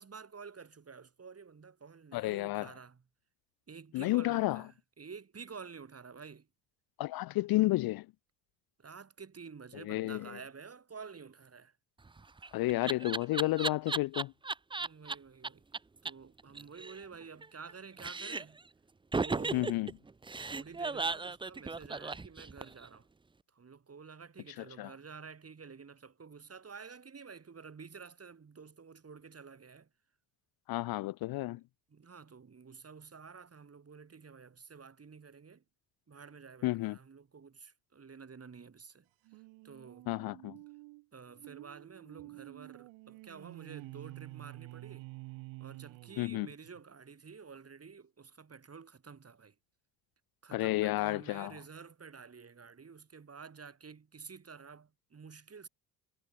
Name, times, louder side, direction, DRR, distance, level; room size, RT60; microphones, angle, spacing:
voice 1, 0.0-3.0 3.7-6.5 8.8-11.7 14.8-15.6 16.0-18.6 19.1-19.8 20.5-23.1 23.5-29.9 31.5-31.6 31.9-35.6 36.1-39.1 39.6-40.1 41.1-45.1 45.6-49.5 50.4-55.7, right 5 dB, 30° right, 6.2 m, -50 dB
voice 2, 2.1-2.7 3.9-4.6 7.0-8.1 9.7-10.3 12.5-14.3 19.5-19.9 24.6-24.9 30.7-31.6 36.6-37.0 40.1-40.6 46.2-46.5 50.5-51.6, left 18 dB, 55° left, 0.5 m, -31 dB
Laughter, 12.0-15.1 15.4-15.5 15.7-15.8 16.1-16.2 16.4-17.7 18.0-18.6 19.1-22.9, right 3 dB, 10° right, 0.6 m, -36 dB
sound 1, 39.3-46.8, right 25 dB, 80° right, 3.1 m, -49 dB
supercardioid pair, 75°, 45 cm